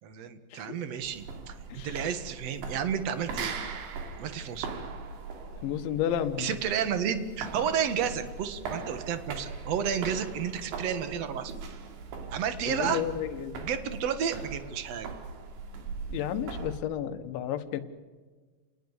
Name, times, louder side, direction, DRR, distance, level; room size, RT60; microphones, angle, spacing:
voice 1, 0.0-1.6 1.8-3.5 4.2-4.7 6.4-11.5 12.3-13.0 13.6-15.1, right 8 dB, 50° right, 10 dB, 2.0 m, -31 dB
sound 1, 1.0-16.8, right 4 dB, 85° right, 4.8 m, -40 dB
voice 2, 5.6-6.6 12.7-13.7 16.1-17.8, left 10 dB, 90° left, 9 dB, 3.8 m, -32 dB
29.5 x 19.5 x 8.3 m, 1.4 s
omnidirectional pair, 5.2 m